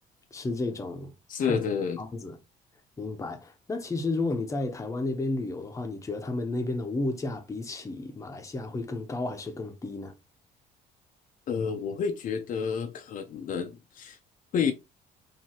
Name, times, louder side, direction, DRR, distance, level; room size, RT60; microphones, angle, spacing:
voice 1, 0.3-1.6 2.0-2.4 3.0-10.1, left 2 dB, 20° left, 0.8 m, -32 dB
voice 2, 1.3-2.0 11.5-14.2 14.5-14.7, left 6 dB, 55° left, 0.7 m, -29 dB
4.7 x 2.7 x 2.9 m
cardioid pair, 110°, 17 cm